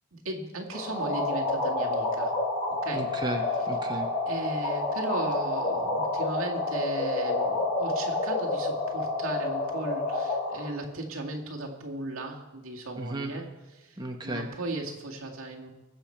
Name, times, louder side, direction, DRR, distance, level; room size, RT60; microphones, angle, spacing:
voice 1, 0.1-2.3 2.8-3.1 4.3-13.4 13.8-14.0 14.2-15.7, right 2 dB, 80° right, 0 dB, 1.9 m, -36 dB
sound 1, 0.7-10.7, left 2 dB, 35° left, 3.6 m, -29 dB
voice 2, 2.9-4.1 13.0-13.3 14.0-14.5, right 1 dB, 20° right, 2 dB, 1.1 m, -34 dB
21.0 x 7.1 x 4.5 m, 1.1 s
head